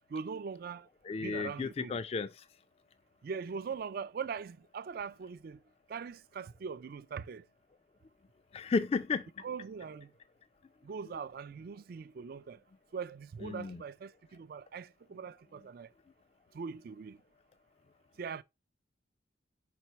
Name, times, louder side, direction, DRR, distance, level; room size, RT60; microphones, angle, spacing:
voice 1, 0.1-0.9 1.2-2.0 3.2-5.6 5.9-7.4 9.4-10.1 10.8-12.6 12.9-15.9 16.5-17.2 18.2-18.4, right 6 dB, 50° right, 0.3 m, -41 dB
voice 2, 1.0-2.3 8.5-9.3 13.4-13.8, left 4 dB, 30° left, 0.3 m, -33 dB
5.0 x 4.3 x 4.4 m
head